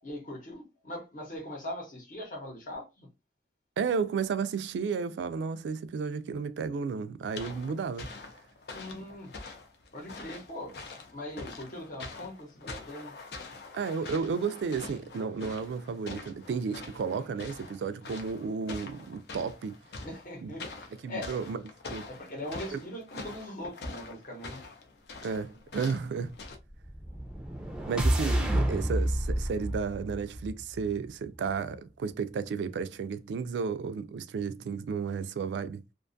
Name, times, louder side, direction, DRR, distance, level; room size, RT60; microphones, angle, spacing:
voice 1, 0.0-3.1 8.7-9.3 9.9-10.8 11.1-13.1 17.2-17.3 20.0-21.4 22.1-24.7, left 1 dB, 50° left, 0.9 m, -41 dB
voice 2, 3.8-8.1 13.7-19.8 20.4-20.5 21.0-21.6 21.9-22.0 22.7-22.8 25.2-26.4 27.9-35.8, right 5 dB, 85° right, 0.3 m, -33 dB
sound 1, 7.4-26.6, left 3 dB, 70° left, 0.5 m, -45 dB
sound 2, 26.8-31.0, right 1 dB, 5° right, 0.4 m, -29 dB
2.5 x 2.3 x 2.5 m
head